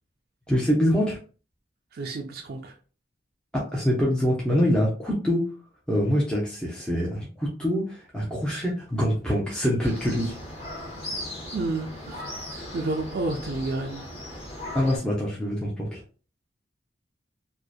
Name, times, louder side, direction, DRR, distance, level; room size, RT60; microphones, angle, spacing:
voice 1, 0.5-1.2 3.5-5.5 5.9-10.4 14.7-16.0, equal, 5° left, 0.5 m, -25 dB
voice 2, 1.9-2.8 11.5-14.1, right 2 dB, 55° right, 0.4 m, -31 dB
sound 1, 9.8-15.0, left 1 dB, 30° left, 1.2 m, -37 dB
2.6 x 2.1 x 2.2 m
head